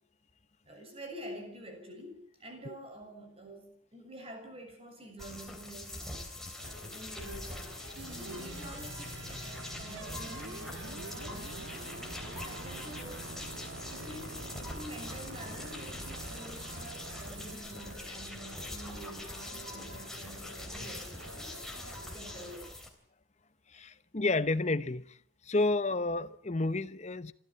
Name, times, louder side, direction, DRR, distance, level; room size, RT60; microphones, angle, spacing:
voice 1, 0.6-6.3 6.6-7.8 8.2-12.1 12.3-13.3 13.9-21.6 22.0-22.8, right 1 dB, 30° right, 6.8 m, -48 dB
sound 1, 5.2-22.9, left 1 dB, ahead, 3.3 m, -44 dB
sound 2, 6.6-22.6, equal, 75° right, 7.3 m, -51 dB
sound 3, 8.0-17.5, right 2 dB, 55° right, 2.2 m, -45 dB
voice 2, 23.7-25.2 25.4-27.3, left 2 dB, 35° left, 0.9 m, -30 dB
27.5 x 13.0 x 8.6 m
head